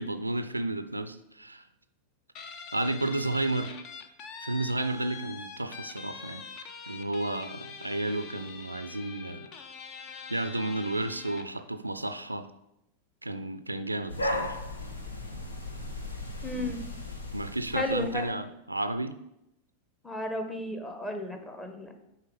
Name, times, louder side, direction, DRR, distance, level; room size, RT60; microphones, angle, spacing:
voice 1, 0.0-1.6 2.7-3.8 4.4-6.4 6.9-9.5 10.3-12.5 13.2-14.6 16.5-16.8 17.3-19.1, right 2 dB, 85° right, 11 dB, 0.4 m, -32 dB
Guitar, 2.3-11.6, left 5 dB, 40° left, 0.8 m, -44 dB
sound 1, 14.1-18.3, left 1 dB, 75° left, 1.1 m, -36 dB
voice 2, 16.4-16.8 17.7-18.4 20.0-22.0, left 1 dB, 10° left, 5 dB, 1.1 m, -34 dB
8.9 x 3.8 x 5.3 m, 0.84 s
figure-of-eight pair, 90°, 0 cm